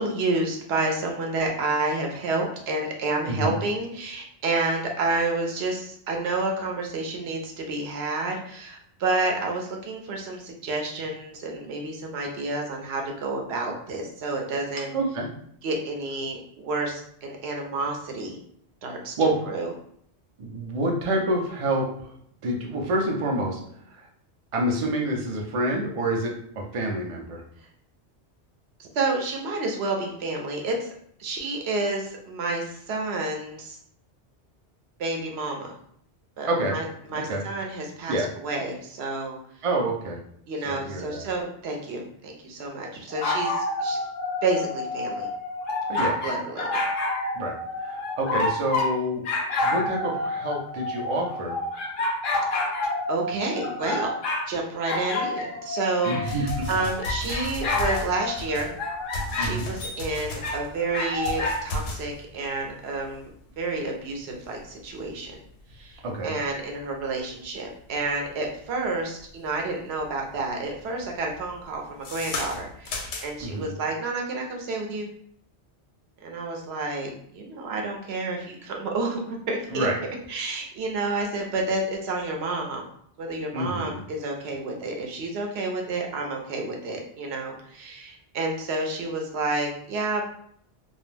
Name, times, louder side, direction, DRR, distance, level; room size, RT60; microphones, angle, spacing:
voice 1, 0.0-14.9 15.6-18.4 18.8-19.7 28.8-30.9 31.2-33.8 35.0-35.7 36.4-39.4 40.5-44.0 44.4-45.3 46.0-46.8 52.6-54.1 54.5-58.7 59.4-65.4 65.7-75.1 76.2-79.9 80.3-82.8 83.2-90.2, right 2 dB, 70° right, 2 dB, 0.8 m, -30 dB
voice 2, 14.9-15.3 19.2-19.4 20.4-22.1 22.4-23.6 23.9-24.0 24.5-27.4 36.5-36.7 37.1-37.4 38.1-38.3 39.6-40.2 40.7-41.3 45.9-46.2 47.3-49.2 49.6-51.6 56.0-56.7 59.4-59.7 66.0-66.4 73.4-73.7 79.7-80.0 83.5-84.0, right 1 dB, 50° right, 0 dB, 0.4 m, -27 dB
sound 1, 43.1-48.9 49.2-54.5 54.8-59.5 60.4-61.6, left 2 dB, 55° left, 0.7 m, -29 dB
sound 2, 56.2-69.5 70.0-70.4 70.6-73.6, left 2 dB, 85° left, 0.9 m, -36 dB
2.3 x 2.1 x 3.1 m, 0.66 s
omnidirectional pair, 1.2 m